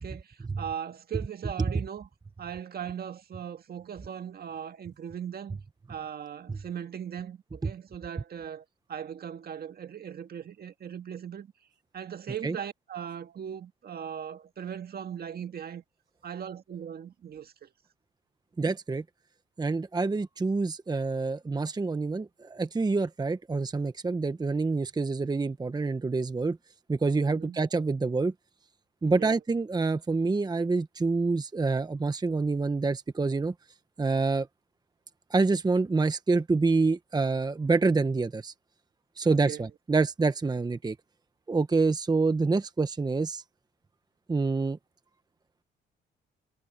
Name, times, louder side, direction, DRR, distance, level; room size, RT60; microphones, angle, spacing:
voice 1, 0.0-2.1 2.4-5.6 5.9-11.5 11.9-15.8 16.2-17.7 20.0-20.2 27.2-27.7 29.1-29.4 39.3-39.7, right 8 dB, 50° right, 1.8 m, -39 dB
voice 2, 18.6-19.0 19.6-26.6 26.9-28.3 29.0-33.5 34.0-34.5 35.3-38.5 39.2-41.0 41.5-43.4 44.3-44.8, right 3 dB, 20° right, 0.9 m, -27 dB
cardioid pair, 90°, 20 cm